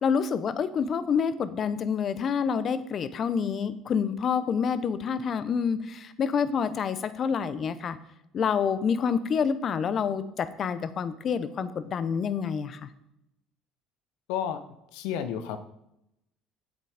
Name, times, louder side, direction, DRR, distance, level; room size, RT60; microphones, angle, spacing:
voice 1, 0.0-8.0 8.3-12.9, left 6 dB, 40° left, 14 dB, 0.8 m, -27 dB
voice 2, 14.3-14.6 14.9-15.6, left 9 dB, 85° left, 11 dB, 0.9 m, -31 dB
8.2 x 7.6 x 5.0 m, 0.83 s
cardioid pair, 110°, 0 cm